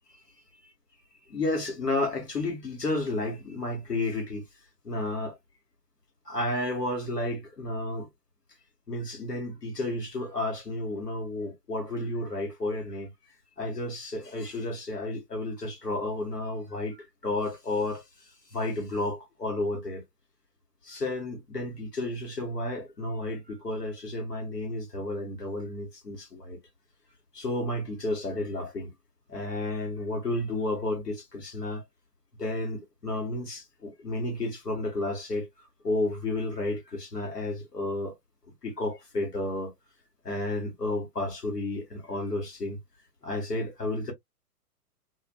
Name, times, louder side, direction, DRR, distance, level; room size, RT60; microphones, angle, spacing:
voice 1, 1.3-4.4 4.8-5.4 6.2-8.1 8.9-13.1 13.6-17.0 17.2-20.0 20.8-26.6 27.3-28.9 29.3-31.8 32.4-35.5 35.8-38.2 38.6-39.7 40.2-42.8 43.2-44.1, left 2 dB, 90° left, 1.5 m, -32 dB
2.5 x 2.4 x 2.2 m
figure-of-eight pair, 120°, 47 cm